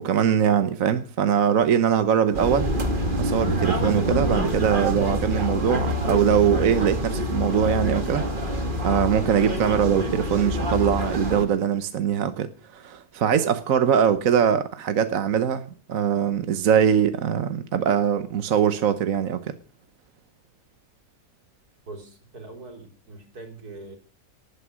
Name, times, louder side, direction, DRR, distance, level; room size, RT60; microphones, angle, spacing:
voice 1, 0.0-2.7 3.2-8.2 8.8-19.5, right 8 dB, 65° right, 1.3 m, -22 dB
sound 1, 2.3-11.4, equal, 35° right, 2.5 m, -26 dB
voice 2, 21.9-24.0, right 2 dB, 85° right, 3.7 m, -42 dB
18.5 x 9.9 x 6.2 m
omnidirectional pair, 1.6 m